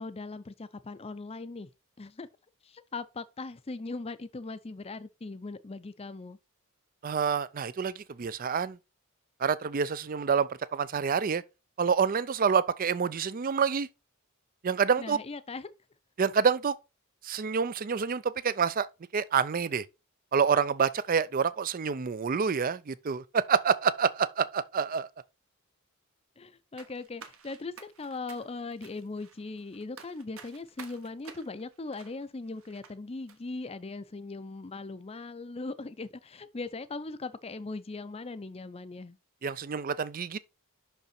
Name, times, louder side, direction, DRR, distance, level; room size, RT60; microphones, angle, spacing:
voice 1, 0.0-1.7 2.0-2.3 2.6-6.4 15.0-15.7 26.4-39.2, left 3 dB, 25° left, 0.5 m, -39 dB
voice 2, 7.0-8.8 9.4-11.4 11.8-13.9 14.6-15.2 16.2-16.7 17.2-18.9 19.1-19.8 20.3-25.1 39.4-40.4, right 6 dB, 40° right, 0.4 m, -27 dB
sound 1, 26.8-32.9 33.3-33.4, right 6 dB, 60° right, 1.1 m, -51 dB
6.0 x 5.5 x 4.3 m
head